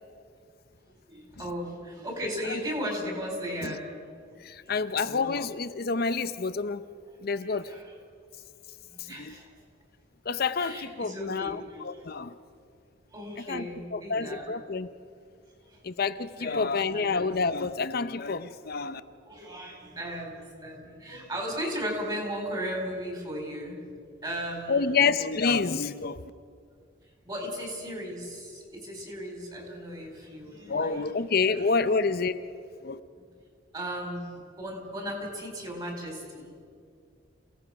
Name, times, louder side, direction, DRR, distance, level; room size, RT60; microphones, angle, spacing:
voice 1, 1.1-4.1 4.6-4.8 7.4-8.0 8.8-9.5 10.6-12.0 13.1-14.5 16.4-17.3 19.2-23.8 24.2-25.0 27.2-31.0 31.5-31.7 33.7-34.3 34.6-36.5, equal, 25° right, 4.5 m, -36 dB
voice 2, 4.4-6.8 7.2-7.7 9.2-9.3 10.3-12.3 13.4-13.7 13.9-14.9 15.8-19.0 24.7-26.2 30.7-32.4 32.8-33.0, left 4 dB, 50° left, 0.7 m, -28 dB
28.0 x 17.0 x 6.0 m
head